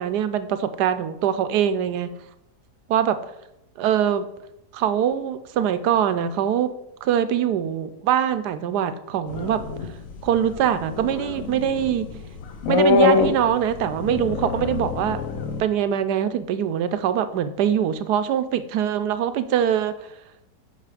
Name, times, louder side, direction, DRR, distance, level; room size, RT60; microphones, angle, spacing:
voice 1, 0.0-2.1 2.9-3.2 3.8-4.2 4.7-6.7 7.0-9.6 10.2-12.1 12.7-15.2 15.6-19.9, right 9 dB, 85° right, 11 dB, 1.2 m, -23 dB
sound 1, 9.3-15.6, left 4 dB, 60° left, 1.2 m, -25 dB
8.3 x 5.7 x 4.9 m, 0.84 s
omnidirectional pair, 1.7 m